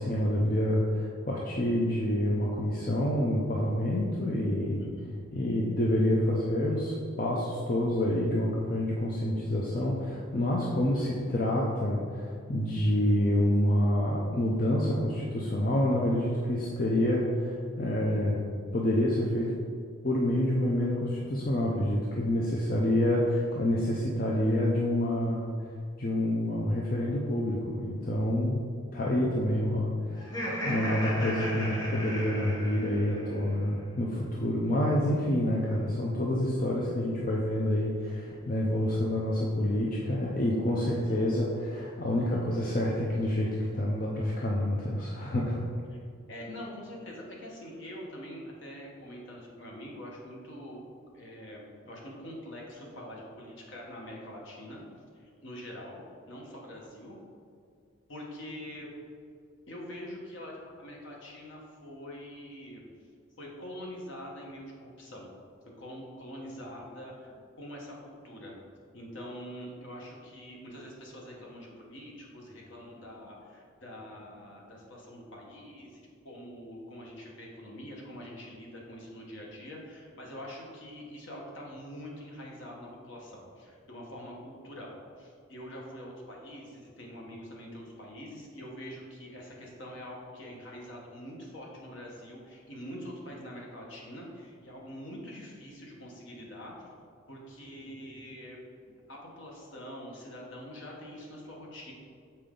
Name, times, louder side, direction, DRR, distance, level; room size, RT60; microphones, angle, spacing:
voice 1, 0.0-4.9 5.3-18.4 18.7-19.5 20.0-25.5 26.0-28.6 28.9-30.3 30.6-45.6, left 1 dB, 40° left, -3 dB, 0.5 m, -28 dB
Laughter, 30.2-33.4, equal, 20° left, 1.1 m, -35 dB
voice 2, 40.9-41.2 46.3-50.8 51.1-54.8 55.1-56.0 56.3-57.2 58.1-58.9 59.7-62.8 63.4-65.3 65.8-68.6 68.9-96.9 97.3-98.6 99.1-101.9, equal, 60° left, -2 dB, 1.2 m, -44 dB
6.8 x 4.3 x 3.7 m, 2.3 s
head